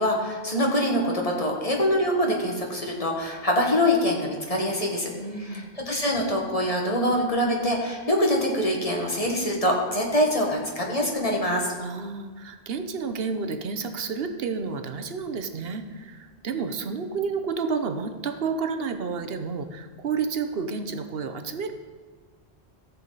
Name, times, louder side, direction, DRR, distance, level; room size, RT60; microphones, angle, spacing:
voice 1, 0.0-5.1 5.4-11.7, left 1 dB, 35° left, 0 dB, 1.6 m, -24 dB
voice 2, 5.1-5.7 11.8-21.7, right 5 dB, 65° right, 7 dB, 1.0 m, -30 dB
14.5 x 7.5 x 4.0 m, 1.5 s
omnidirectional pair, 1.1 m